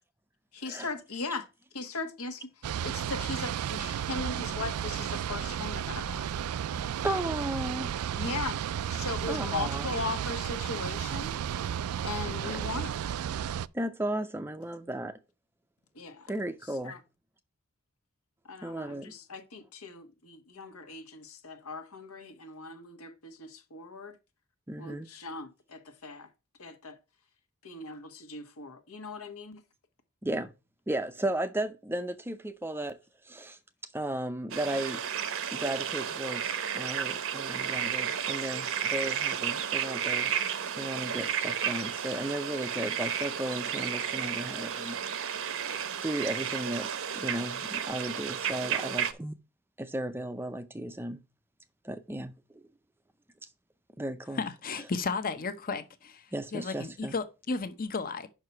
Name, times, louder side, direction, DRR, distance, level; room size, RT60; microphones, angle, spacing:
voice 1, 0.5-1.5 1.7-6.3 8.1-11.4 12.0-12.9 15.9-16.3 16.6-17.0 18.4-24.2 24.8-26.3 26.6-27.0 27.6-29.6, left 3 dB, 80° left, 1.3 m, -39 dB
sound 1, 2.6-13.7, right 9 dB, 80° right, 0.3 m, -33 dB
voice 2, 7.0-7.9 9.3-9.9 12.4-12.7 13.7-15.2 16.3-17.0 18.6-19.1 24.7-25.1 30.2-30.5 30.9-33.0 33.3-33.6 33.9-35.0 35.5-40.3 40.7-45.0 46.0-46.9 47.2-49.3 49.8-51.2 51.8-52.6 54.0-54.4 56.3-57.1, right 1 dB, 10° right, 0.5 m, -35 dB
sound 2, 34.5-49.1, right 8 dB, 65° right, 0.8 m, -32 dB
voice 3, 54.4-56.3 56.5-58.3, left 4 dB, 40° left, 0.8 m, -33 dB
5.8 x 4.7 x 5.7 m
head